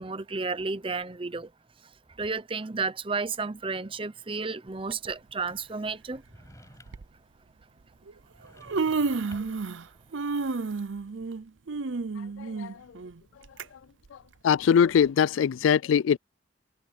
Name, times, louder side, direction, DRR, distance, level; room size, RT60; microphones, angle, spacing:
voice 1, 0.0-1.5 2.2-6.2, right 4 dB, 25° right, 0.7 m, -32 dB
Human voice, 4.9-5.1 6.2-6.3 6.9-7.1 8.1-8.2 8.5-9.9 10.1-13.6 14.1-14.2 15.0-15.1, right 4 dB, 80° right, 0.7 m, -31 dB
sound 1, 6.3-7.2 8.3-9.7, left 1 dB, 15° left, 6.4 m, -52 dB
voice 2, 12.4-12.8 14.1-14.2 14.4-16.2, left 7 dB, 90° left, 0.3 m, -22 dB
head